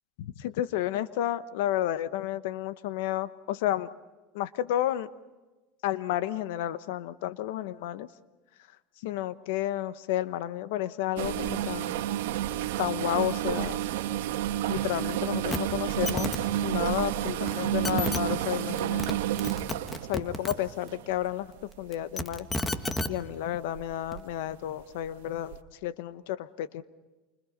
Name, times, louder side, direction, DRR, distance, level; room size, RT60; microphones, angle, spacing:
voice 1, 0.2-3.9 4.3-5.1 5.8-8.1 9.0-12.0 12.8-13.8 14.7-19.2 20.1-22.5 23.1-26.8, left 13 dB, 80° left, 14 dB, 1.0 m, -31 dB
sound 1, 11.2-21.3 22.0-22.3 22.8-23.0 23.7-24.2 24.5-24.6 25.5-25.6, right 12 dB, 90° right, 1.5 m, -30 dB
sound 2, 15.5-15.6 15.9-16.4 17.5-17.6 17.8-18.2 18.8-19.1 19.4-20.5 21.9-23.1 24.1-24.2, left 2 dB, 15° left, 1.5 m, -31 dB
28.5 x 25.5 x 5.3 m, 1.1 s
supercardioid pair, 130°, 0 cm